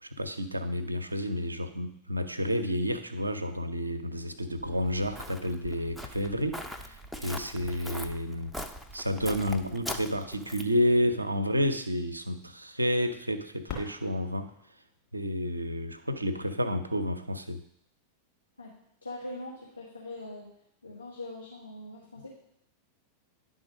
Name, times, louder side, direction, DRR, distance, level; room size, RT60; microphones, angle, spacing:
voice 1, 0.0-8.5 8.9-14.5 15.1-17.6, equal, 85° right, 8 dB, 0.5 m, -30 dB
Walk footsteps, 4.6-10.8, equal, ahead, 0.5 m, -41 dB
Fireworks, 13.7-16.4 17.1-17.2 17.9-18.3 20.2-20.4, left 5 dB, 45° left, 2.4 m, -45 dB
voice 2, 19.0-20.5 20.8-22.3, left 2 dB, 85° left, -4 dB, 1.2 m, -42 dB
10.0 x 3.8 x 5.0 m, 0.75 s
figure-of-eight pair, 90°, 0 cm